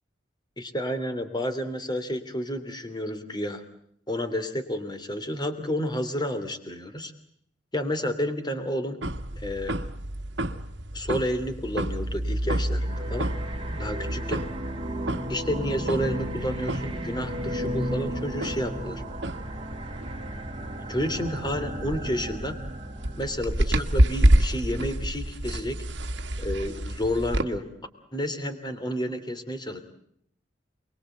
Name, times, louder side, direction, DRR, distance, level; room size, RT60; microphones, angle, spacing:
voice 1, 0.6-3.6 4.1-7.1 7.7-9.0 9.4-9.8 10.9-13.3 13.7-14.4 15.3-19.0 20.8-22.6 23.2-25.8 26.4-27.7 28.1-29.8, equal, 25° left, 9 dB, 3.0 m, -30 dB
sound 1, 9.0-27.4, right 1 dB, 65° right, 1.6 m, -29 dB
sound 2, 12.8-23.3, right 1 dB, 30° right, 3.9 m, -34 dB
29.0 x 22.5 x 8.0 m, 0.69 s
head